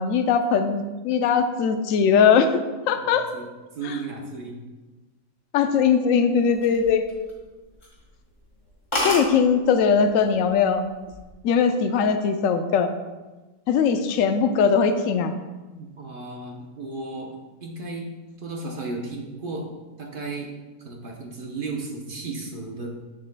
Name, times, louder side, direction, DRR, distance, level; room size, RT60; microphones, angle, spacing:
voice 1, 0.0-2.5 2.9-3.2 5.5-7.0 9.0-10.8 11.4-12.9 13.7-15.3, left 6 dB, 65° left, 8 dB, 0.8 m, -20 dB
voice 2, 3.0-3.5 3.7-4.6 15.8-18.1 18.4-19.7 20.0-20.5 20.8-22.9, right 3 dB, 45° right, 1 dB, 0.8 m, -34 dB
sound 1, 6.4-7.4 7.8-8.0 8.4-8.5 8.7-8.8 8.9-9.3 10.2-10.5 10.9-11.3, left 1 dB, 15° left, 1.9 m, -27 dB
8.5 x 7.4 x 2.2 m, 1.2 s
omnidirectional pair, 1.8 m